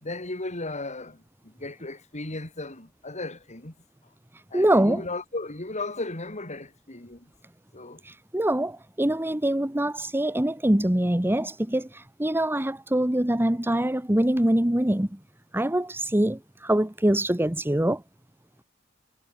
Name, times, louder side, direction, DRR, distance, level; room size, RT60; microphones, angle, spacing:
voice 1, 0.0-3.7 4.5-7.3 7.7-8.0 12.4-12.5, left 2 dB, 35° left, 3.5 m, -36 dB
voice 2, 4.5-5.0 8.0-15.2 15.5-18.0, right 1 dB, 10° right, 1.1 m, -24 dB
head